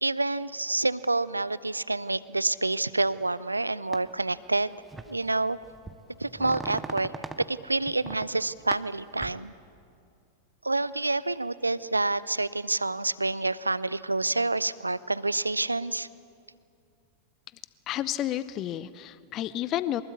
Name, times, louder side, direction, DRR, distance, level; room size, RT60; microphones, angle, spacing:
voice 1, 0.0-4.8 5.1-5.6 6.2-7.1 7.5-9.5 10.6-16.1, right 2 dB, 80° right, 19 dB, 0.6 m, -28 dB
sound 1, 3.9-4.0 4.9-5.2 5.6-7.5 7.9-8.3 8.7-9.3, right 3 dB, 10° right, 1.1 m, -39 dB
voice 2, 17.9-20.0, left 12 dB, 35° left, 17 dB, 0.6 m, -31 dB
23.5 x 21.5 x 8.6 m, 2.4 s
figure-of-eight pair, 90°, 0 cm